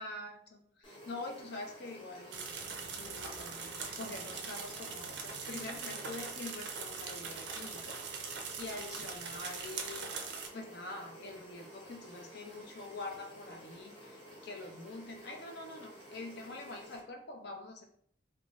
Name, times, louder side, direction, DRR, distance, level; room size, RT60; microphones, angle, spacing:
voice 1, 0.0-2.5 2.9-8.0 8.6-10.2 10.5-17.8, left 2 dB, 55° left, 3 dB, 0.5 m, -45 dB
sound 1, 0.8-17.0, equal, 30° left, 0.8 m, -52 dB
sound 2, 2.3-10.5, right 5 dB, 65° right, 0.4 m, -42 dB
2.5 x 2.3 x 3.0 m, 0.63 s
head